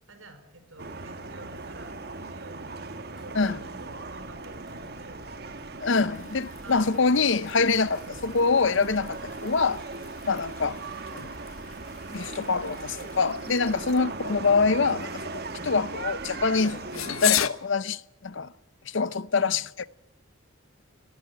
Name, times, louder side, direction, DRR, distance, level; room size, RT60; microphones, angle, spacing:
voice 1, 0.1-5.9 6.6-6.9 8.0-8.2 10.8-11.4 15.5-15.8 19.3-19.6, right 2 dB, 70° right, 5.0 m, -50 dB
sound 1, 0.8-17.4, right 3 dB, 50° right, 1.6 m, -39 dB
sound 2, 1.7-17.5, left 13 dB, 80° left, 1.0 m, -38 dB
sound 3, 3.1-17.1, equal, ahead, 7.7 m, -54 dB
voice 2, 5.8-9.8 10.2-10.8 12.1-18.5 18.9-19.6, left 4 dB, 60° left, 0.7 m, -25 dB
22.0 x 18.5 x 9.2 m
head